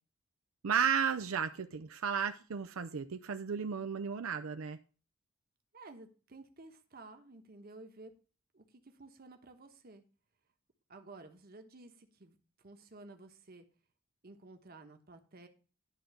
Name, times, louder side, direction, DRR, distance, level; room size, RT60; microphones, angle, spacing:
voice 1, 0.6-4.8, right 7 dB, 85° right, 0.5 m, -33 dB
voice 2, 5.7-8.1 8.5-10.0 10.9-13.7 14.2-15.5, right 2 dB, 45° right, 1.2 m, -53 dB
11.0 x 3.8 x 6.9 m
head